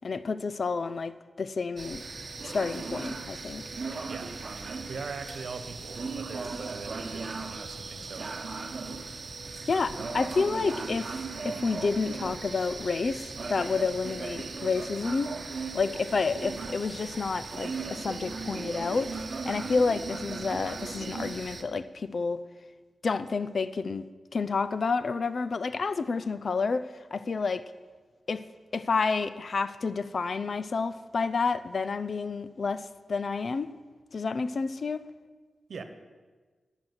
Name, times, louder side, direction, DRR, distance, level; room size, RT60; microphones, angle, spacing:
voice 1, 0.0-2.0 2.4-3.6 9.7-15.3 15.7-19.1 19.4-22.4 23.0-24.0 24.3-26.9 27.1-27.7 28.3-28.4 28.7-33.7 34.1-35.0, left 4 dB, 55° left, 14 dB, 0.6 m, -29 dB
sound 1, 1.8-21.6, right 4 dB, 50° right, 1.1 m, -37 dB
voice 2, 4.9-8.5 9.7-10.1 35.7-35.8, right 4 dB, 75° right, 9 dB, 1.2 m, -41 dB
14.0 x 6.1 x 8.1 m, 1.4 s
wide cardioid pair, 85°, 0 cm